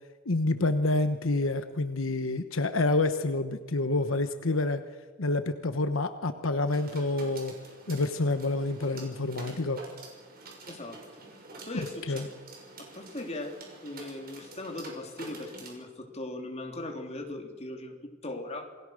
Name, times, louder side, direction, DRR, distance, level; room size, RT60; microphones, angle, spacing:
voice 1, 0.3-4.8 5.2-7.5 7.9-9.8 12.1-12.2, left 2 dB, 75° left, 9 dB, 1.1 m, -28 dB
sound 1, 6.7-15.7, right 3 dB, 50° right, 6.3 m, -47 dB
voice 2, 10.6-11.2 11.6-12.2 12.8-13.5 13.8-18.0 18.2-18.7, left 2 dB, 30° left, 2 dB, 3.4 m, -39 dB
28.0 x 20.5 x 6.5 m, 1.4 s
head